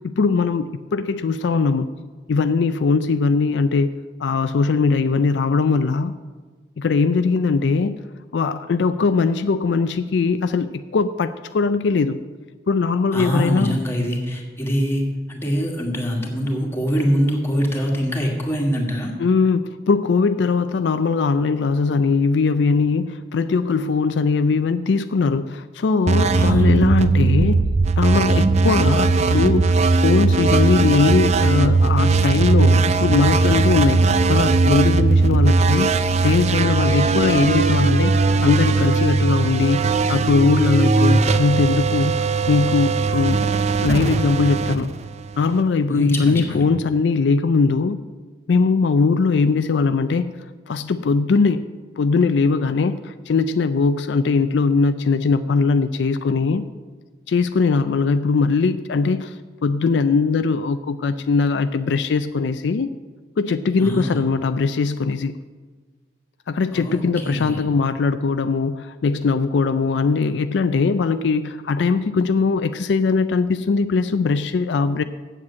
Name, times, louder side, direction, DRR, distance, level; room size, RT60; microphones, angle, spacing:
voice 1, 0.0-1.9 2.3-6.1 6.8-8.0 8.3-12.2 12.7-13.8 19.2-27.6 28.0-35.9 36.2-42.1 42.5-43.4 43.8-44.9 45.4-48.0 48.5-50.3 50.7-51.6 52.0-56.7 57.3-59.3 59.6-62.9 63.4-65.4 66.5-75.0, left 4 dB, 75° left, 11 dB, 0.4 m, -20 dB
voice 2, 13.1-19.1 26.3-26.7 45.9-46.6 63.8-64.2 66.7-67.6, equal, 15° left, 0 dB, 1.7 m, -24 dB
sound 1, 26.1-45.6, right 3 dB, 35° right, 0.4 m, -18 dB
7.9 x 7.4 x 8.3 m, 1.4 s
head